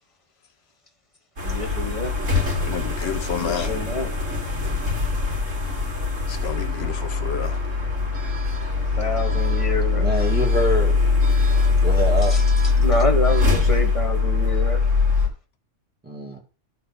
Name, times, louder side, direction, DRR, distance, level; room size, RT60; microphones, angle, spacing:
voice 1, 1.4-2.1 3.3-4.1 9.0-10.1 12.3-12.4 12.8-14.9, left 1 dB, 25° left, 1.7 m, -27 dB
Tram Berlin, 1.4-15.3, left 4 dB, 75° right, 2.3 m, -22 dB
voice 2, 2.7-3.7 6.3-7.6, left 8 dB, 60° left, 1.0 m, -30 dB
voice 3, 10.0-11.0 11.8-12.3 16.0-16.4, equal, 5° right, 1.8 m, -25 dB
12.0 x 4.0 x 5.8 m
omnidirectional pair, 1.3 m